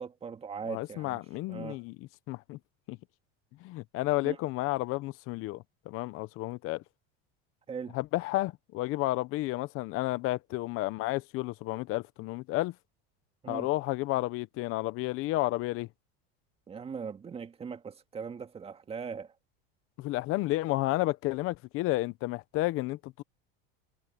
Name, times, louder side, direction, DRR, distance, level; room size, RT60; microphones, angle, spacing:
voice 1, 0.0-1.2 1.5-1.8 4.2-4.4 7.7-8.0 13.4-13.7 16.7-19.3, right 6 dB, 20° right, 2.0 m, -39 dB
voice 2, 0.7-2.6 2.9-3.0 3.6-6.8 7.9-12.7 13.5-15.9 20.0-23.2, left 18 dB, 45° left, 0.9 m, -31 dB
supercardioid pair, 145°, 30 cm